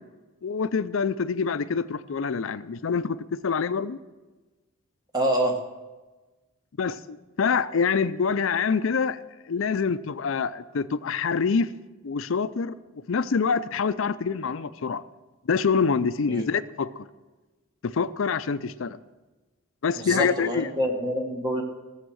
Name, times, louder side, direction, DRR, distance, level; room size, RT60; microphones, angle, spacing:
voice 1, 0.4-3.2 3.4-4.0 6.8-9.2 9.5-11.7 12.0-12.7 13.1-15.0 15.5-17.1 17.8-19.0 19.8-20.7, left 5 dB, 65° left, 0.5 m, -26 dB
voice 2, 5.1-5.6 16.3-16.4 20.0-21.6, equal, 20° right, 1.6 m, -26 dB
15.5 x 7.4 x 6.3 m
head